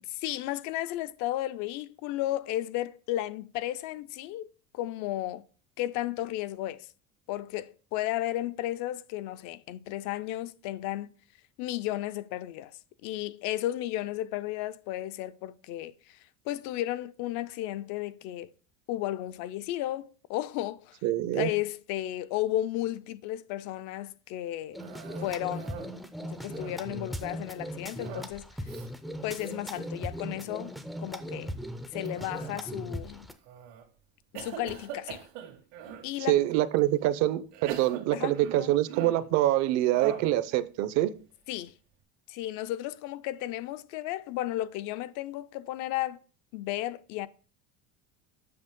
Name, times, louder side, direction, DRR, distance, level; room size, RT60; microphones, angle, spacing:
voice 1, 0.2-4.5 4.7-5.4 5.8-6.9 7.3-11.1 11.6-12.7 13.0-18.5 18.9-21.0 21.3-24.8 25.2-25.8 26.2-28.7 29.2-31.5 31.9-33.3 34.3-35.2 36.0-36.4 38.1-38.7 41.5-41.7 42.3-46.2 46.5-47.3, left 14 dB, 60° left, 0.5 m, -34 dB
voice 2, 21.0-21.5 36.3-41.1, right 14 dB, 55° right, 0.6 m, -25 dB
sound 1, 24.7-33.3, equal, ahead, 0.3 m, -39 dB
Cough, 24.8-26.0 26.3-27.0 28.0-28.4 28.6-28.9 29.3-29.5 30.1-30.5 32.1-32.8 33.4-33.8 34.3-36.1 36.8-36.9 37.5-39.3 39.9-40.4, right 8 dB, 90° right, 1.9 m, -42 dB
7.8 x 5.7 x 3.6 m
cardioid pair, 160°, 33 cm